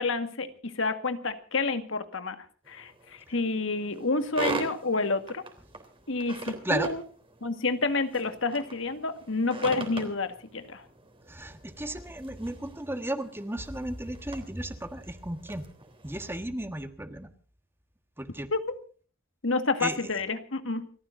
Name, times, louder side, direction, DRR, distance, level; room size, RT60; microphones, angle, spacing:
voice 1, 0.0-5.4 6.1-7.0 7.4-10.8 18.5-18.7 19.4-20.9, left 3 dB, 70° left, 9 dB, 1.7 m, -29 dB
sound 1, 2.6-16.4, right 2 dB, 25° right, 3.5 m, -42 dB
voice 2, 11.3-15.6 16.0-17.3 18.2-18.5 19.8-20.0, right 1 dB, 10° right, 8 dB, 1.4 m, -34 dB
30.0 x 14.5 x 2.6 m, 0.40 s
head